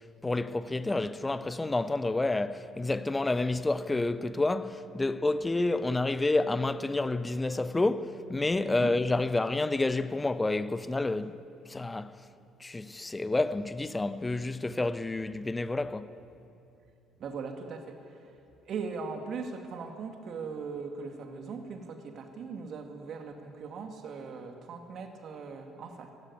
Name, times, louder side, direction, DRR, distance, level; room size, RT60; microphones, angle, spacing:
voice 1, 0.2-11.4 11.7-12.2 12.6-16.1, left 2 dB, 15° left, 0.8 m, -29 dB
voice 2, 17.2-18.3 18.7-26.1, right 5 dB, 50° right, 2.3 m, -39 dB
16.0 x 16.0 x 9.9 m
figure-of-eight pair, 50°, 0 cm